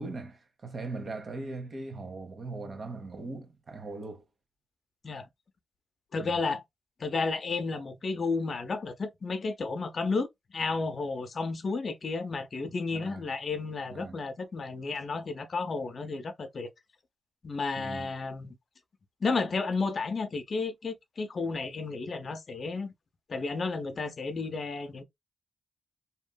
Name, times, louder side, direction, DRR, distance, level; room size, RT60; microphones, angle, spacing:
voice 1, 0.0-4.2 6.2-6.4 12.9-13.3 13.9-14.2 17.8-18.1, right 3 dB, 55° right, 1.0 m, -40 dB
voice 2, 6.1-6.6 7.0-16.7 17.4-18.6 19.2-22.9 23.3-25.0, left 4 dB, 60° left, 0.6 m, -32 dB
2.8 x 2.6 x 2.2 m
supercardioid pair, 50°, 0 cm